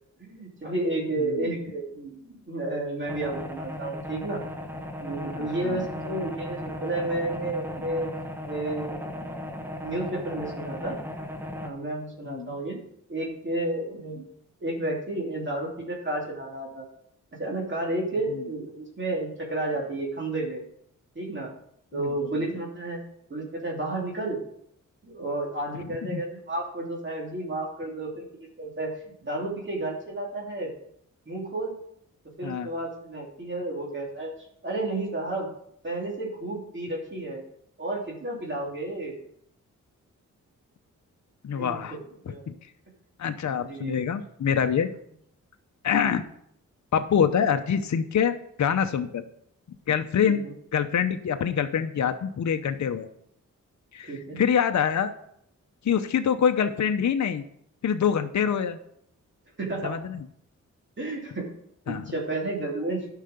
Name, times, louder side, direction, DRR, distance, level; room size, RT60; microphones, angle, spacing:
voice 1, 0.2-4.4 5.0-8.1 8.4-9.0 9.5-11.0 11.6-12.8 13.1-14.2 14.6-16.9 17.3-20.6 21.1-21.5 21.9-23.0 23.3-24.4 25.0-30.7 31.3-31.7 32.4-34.3 34.6-35.5 35.8-37.4 37.8-39.2 41.5-42.0 42.3-42.4 43.6-44.0 50.2-50.5 54.1-54.4 59.6-60.0 61.0-61.5 61.9-63.1, right 2 dB, 35° right, -2 dB, 2.9 m, -31 dB
sound 1, 3.1-11.7, left 1 dB, 5° right, 1.2 m, -36 dB
voice 2, 5.4-5.8 12.3-12.5 21.9-22.1 26.1-26.2 32.4-32.7 41.4-41.9 42.5-42.6 43.2-44.9 45.8-46.2 46.9-49.2 49.9-50.4 50.7-53.1 53.9-55.1 55.8-57.4 57.8-58.8 59.8-60.2 61.9-62.1, left 7 dB, 60° left, 7 dB, 0.7 m, -25 dB
11.5 x 5.7 x 5.1 m, 0.71 s
cardioid pair, 80°, 32 cm